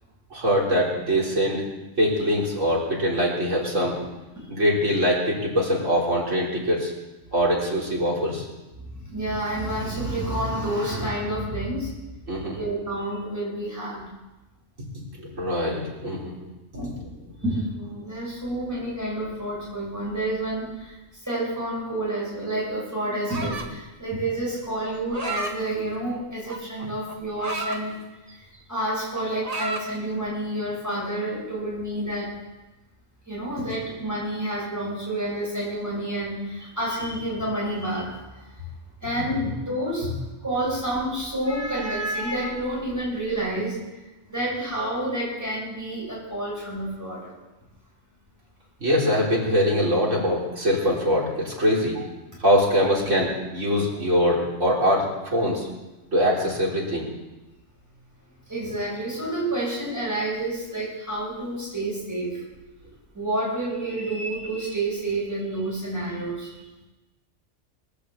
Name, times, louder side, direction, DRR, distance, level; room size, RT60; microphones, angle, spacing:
voice 1, 0.3-1.6 2.0-4.0 4.5-6.9 7.3-8.4 12.3-12.6 15.2-16.3 48.8-52.0 52.4-55.7 56.1-57.1, equal, 80° right, -4 dB, 4.4 m, -23 dB
voice 2, 8.9-11.9 12.5-14.1 16.7-16.9 17.4-27.9 28.3-32.3 33.3-38.4 39.0-40.1 40.4-43.8 44.3-47.3 52.9-53.1 58.5-62.4 63.1-66.5, right 1 dB, 15° right, -7 dB, 7.9 m, -29 dB
sound 1, 23.3-23.8 24.9-25.6 26.5-27.8 28.3-28.6 28.8-29.9, right 2 dB, 30° right, 1.3 m, -32 dB
20.0 x 8.4 x 8.1 m, 1.1 s
omnidirectional pair, 1.3 m